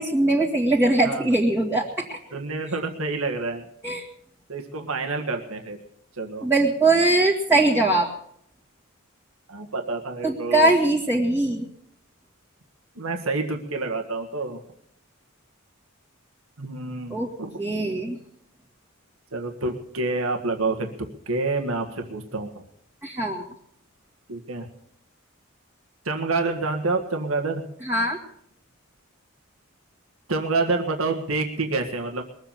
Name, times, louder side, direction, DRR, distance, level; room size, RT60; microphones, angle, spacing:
voice 1, 0.0-2.2 3.8-4.0 6.4-8.1 10.2-11.7 17.1-17.3 17.6-18.2 23.0-23.5 27.8-28.2, right 2 dB, 10° right, -5 dB, 2.1 m, -21 dB
voice 2, 2.3-3.7 4.5-5.8 6.2-6.5 9.5-10.7 13.0-14.6 16.6-17.6 19.3-20.9 21.3-22.6 24.3-24.7 26.1-27.6 30.3-32.2, right 3 dB, 85° right, 3 dB, 1.8 m, -28 dB
21.5 x 8.0 x 7.3 m, 0.69 s
head